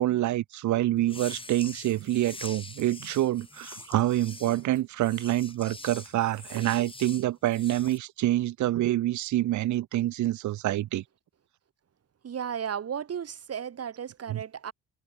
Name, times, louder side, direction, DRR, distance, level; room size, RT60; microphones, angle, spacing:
voice 1, 0.0-11.0 14.3-14.4, right 14 dB, 70° right, 0.9 m, -27 dB
sound 1, 1.0-8.0, left 3 dB, 15° left, 3.2 m, -45 dB
voice 2, 12.2-14.7, right 8 dB, 55° right, 5.1 m, -34 dB
cardioid pair, 90°, 30 cm